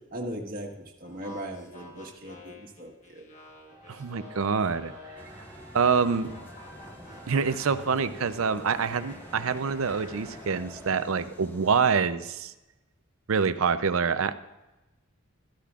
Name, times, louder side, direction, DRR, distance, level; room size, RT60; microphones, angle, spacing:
voice 1, 0.1-3.2, right 1 dB, 45° right, 0 dB, 1.5 m, -38 dB
sound 1, 1.0-5.4 5.8-10.6, left 1 dB, 35° left, 1.3 m, -49 dB
sound 2, 3.7-11.0, equal, 10° right, 3.5 m, -48 dB
voice 2, 3.9-4.9 5.7-6.3 7.3-12.5 13.3-14.3, right 5 dB, 80° right, 12 dB, 0.6 m, -26 dB
sound 3, 5.2-11.8, equal, 10° left, 0.8 m, -50 dB
13.0 x 12.0 x 2.4 m, 1.0 s
head